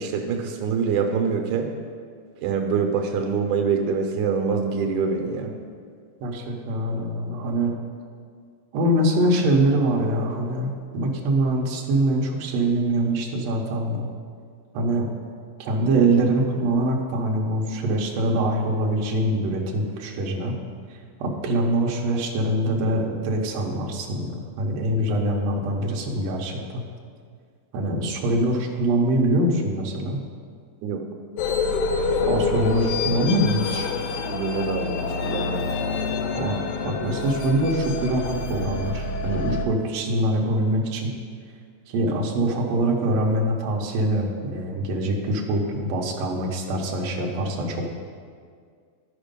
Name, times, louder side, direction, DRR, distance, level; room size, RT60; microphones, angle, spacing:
voice 1, 0.0-1.7 2.4-5.5 30.8-31.0 34.3-35.7, right 5 dB, 90° right, 3 dB, 2.2 m, -25 dB
voice 2, 6.2-7.8 8.7-14.1 14.7-15.1 15.6-20.6 21.2-26.8 27.7-30.2 32.2-33.9 36.3-41.1 41.9-47.9, right 1 dB, 65° right, -1 dB, 2.1 m, -24 dB
sound 1, 31.4-39.6, left 4 dB, 90° left, 2.2 m, -27 dB
13.0 x 5.1 x 5.2 m, 2.1 s
omnidirectional pair, 3.4 m